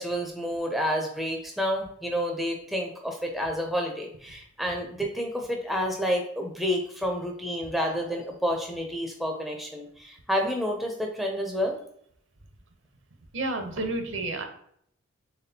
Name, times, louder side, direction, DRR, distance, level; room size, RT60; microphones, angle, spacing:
voice 1, 0.0-11.8, equal, ahead, 1 dB, 0.4 m, -29 dB
voice 2, 13.3-14.4, right 2 dB, 60° right, 6 dB, 0.6 m, -30 dB
4.1 x 3.6 x 2.7 m, 0.67 s
head